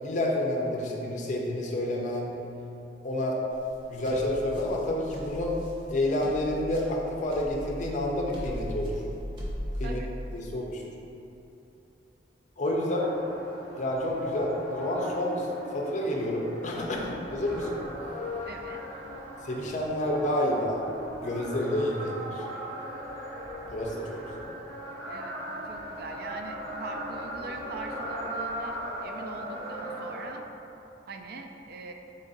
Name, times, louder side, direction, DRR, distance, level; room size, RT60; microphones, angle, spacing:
voice 1, 0.0-2.3 3.0-3.4 3.9-5.5 5.9-9.0 9.8-10.0 10.3-10.8 12.6-13.1 13.7-15.5 15.7-17.8 19.4-20.8 21.2-22.4 23.7-24.4, left 1 dB, 45° left, -1 dB, 0.5 m, -29 dB
sound 1, 3.5-10.4, equal, 30° right, 0.7 m, -38 dB
sound 2, 13.0-30.3, equal, 85° right, 0.9 m, -39 dB
voice 2, 18.4-18.8 25.1-25.4 25.6-30.5 31.1-31.9, right 3 dB, 60° right, 4 dB, 0.3 m, -41 dB
4.0 x 2.5 x 3.9 m, 2.9 s
head